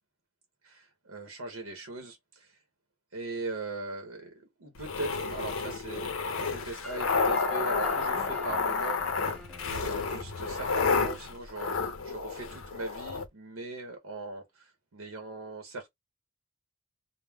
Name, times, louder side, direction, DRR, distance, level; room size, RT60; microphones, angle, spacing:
voice 1, 0.6-2.6 3.1-6.1 6.5-9.0 9.6-11.8 12.0-15.9, right 3 dB, 85° right, 0.8 m, -40 dB
sound 1, 4.8-13.3, left 4 dB, 70° left, 0.6 m, -30 dB
sound 2, 6.8-11.4, left 3 dB, 5° left, 0.6 m, -45 dB
2.3 x 2.1 x 3.3 m
head